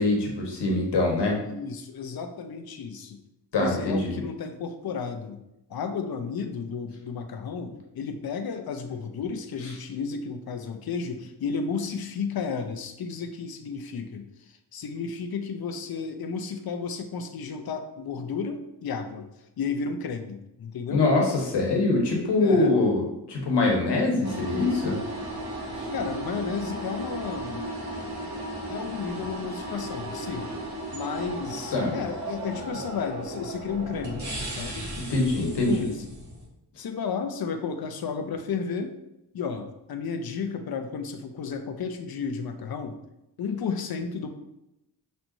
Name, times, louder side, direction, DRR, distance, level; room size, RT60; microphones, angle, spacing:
voice 1, 0.0-1.4 3.5-4.2 20.9-23.0 23.3-25.0 25.8-25.9 31.7-31.9 35.1-35.8, left 2 dB, 75° left, 0 dB, 1.3 m, -23 dB
voice 2, 1.4-3.2 3.6-5.4 5.7-14.3 14.7-19.3 19.6-21.1 22.4-22.8 25.9-27.7 28.7-30.5 30.9-34.9 35.4-36.1 36.8-39.0 39.3-43.0 43.4-44.3, left 5 dB, 60° left, 6 dB, 0.7 m, -33 dB
sound 1, 24.2-36.5, right 1 dB, 45° right, 1.6 m, -35 dB
6.0 x 3.3 x 2.7 m, 0.86 s
cardioid pair, 70°, 41 cm